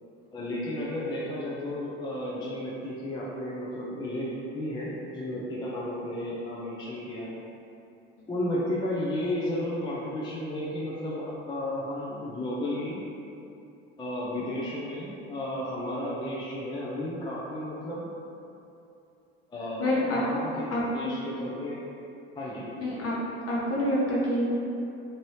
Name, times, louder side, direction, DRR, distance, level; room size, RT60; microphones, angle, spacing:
voice 1, 0.3-4.3 4.5-7.3 8.3-13.0 14.0-18.1 19.5-21.8 22.4-23.0, left 1 dB, 15° left, -6 dB, 0.5 m, -33 dB
voice 2, 19.8-20.2 20.7-21.3 22.8-23.2 23.5-24.4, left 1 dB, 45° left, -6 dB, 1.0 m, -27 dB
2.8 x 2.6 x 3.1 m, 2.8 s
hypercardioid pair, 75°, 32 cm